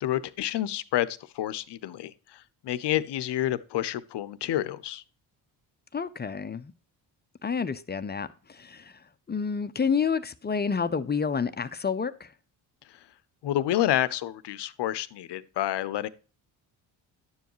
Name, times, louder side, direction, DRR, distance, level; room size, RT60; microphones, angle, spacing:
voice 1, 0.0-5.0 13.4-16.1, left 13 dB, 55° left, 0.7 m, -29 dB
voice 2, 5.9-6.7 7.4-9.0 9.3-12.3, left 6 dB, 20° left, 0.5 m, -29 dB
10.5 x 7.0 x 3.0 m
supercardioid pair, 60°, 49 cm